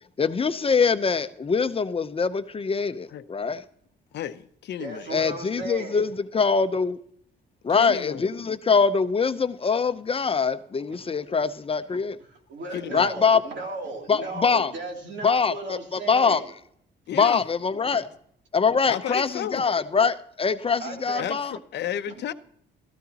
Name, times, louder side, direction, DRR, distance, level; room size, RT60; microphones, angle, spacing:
voice 1, 0.2-3.6 5.1-7.0 7.6-12.2 12.9-13.4 14.1-14.7 15.2-16.4 17.2-18.0 18.5-21.6, left 5 dB, 30° left, 0.7 m, -23 dB
voice 2, 4.1-5.1 7.8-8.3 12.7-13.2 17.1-17.4 18.9-19.6 21.2-22.3, left 10 dB, 60° left, 0.7 m, -32 dB
voice 3, 4.8-6.0 10.9-11.0 12.5-16.5 17.9-18.0 20.8-21.2 22.1-22.2, right 2 dB, 65° right, 2.9 m, -36 dB
13.5 x 12.5 x 2.9 m
cardioid pair, 90°, 20 cm